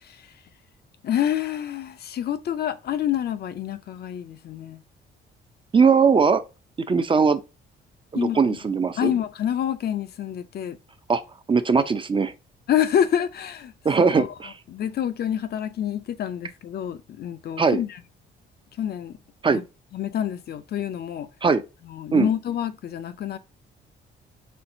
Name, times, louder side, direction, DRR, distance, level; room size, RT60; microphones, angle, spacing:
voice 1, 1.0-4.8 8.1-8.4 9.0-10.8 12.7-13.7 14.2-14.3 14.7-17.9 18.8-19.2 19.5-19.6 19.9-21.3 21.9-23.4, left 10 dB, 55° left, 0.4 m, -27 dB
voice 2, 5.7-6.4 6.9-7.4 8.1-9.1 11.1-11.2 11.5-12.3 13.8-14.5 17.6-17.8 19.4-19.6 21.4-21.6 22.1-22.3, right 5 dB, 25° right, 0.4 m, -20 dB
4.3 x 3.1 x 2.6 m
cardioid pair, 90°, 20 cm